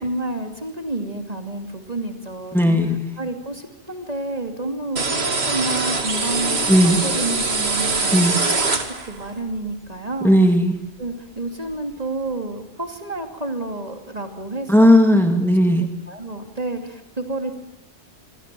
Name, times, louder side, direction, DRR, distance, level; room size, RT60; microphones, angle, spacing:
voice 1, 0.0-2.8 3.2-10.4 11.0-15.1 16.1-17.5, right 2 dB, 35° right, 5 dB, 2.8 m, -30 dB
voice 2, 2.5-3.0 6.7-7.0 8.1-8.4 10.2-10.7 14.7-15.9, equal, ahead, 5 dB, 2.1 m, -15 dB
sound 1, 5.0-9.3, right 3 dB, 65° right, 2.4 m, -23 dB
27.0 x 24.0 x 7.6 m, 0.86 s
omnidirectional pair, 1.2 m